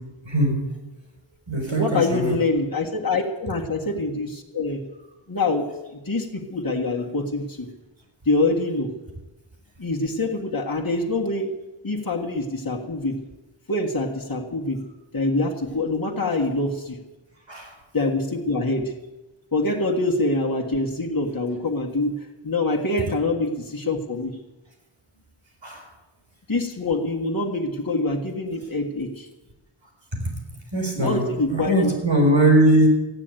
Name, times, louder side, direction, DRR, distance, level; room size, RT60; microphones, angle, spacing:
voice 1, 0.2-0.6 1.5-2.4 17.5-17.7 25.6-25.8 30.7-31.2 31.5-32.9, right 1 dB, 65° right, 1 dB, 5.2 m, -20 dB
voice 2, 1.7-4.9 5.3-7.7 8.3-8.9 9.8-11.5 11.8-13.2 13.7-14.8 15.1-17.0 17.9-18.9 19.5-24.3 26.5-29.3 31.0-31.9, left 2 dB, 45° left, -1 dB, 1.8 m, -25 dB
15.0 x 9.9 x 8.9 m, 1.1 s
wide cardioid pair, 40°, 49 cm